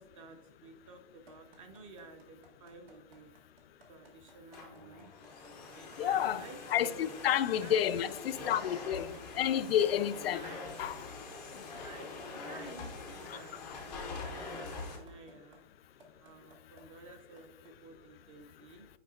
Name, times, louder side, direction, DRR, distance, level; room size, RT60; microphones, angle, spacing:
voice 1, 0.0-3.3 3.9-5.1 5.7-8.6 10.3-10.6 11.8-13.6 13.9-15.6 16.2-18.9, right 3 dB, 30° right, 0.7 m, -52 dB
sound 1, 1.3-7.2 7.6-14.3 14.8-15.6 16.0-16.8 17.4-17.7, right 3 dB, 65° right, 1.8 m, -60 dB
Domestic sounds home sounds, 4.3-15.0, left 3 dB, 5° left, 0.4 m, -44 dB
voice 2, 6.0-10.9 13.3-13.4, left 10 dB, 65° left, 0.5 m, -31 dB
8.8 x 4.9 x 2.4 m
hypercardioid pair, 160°, 32 cm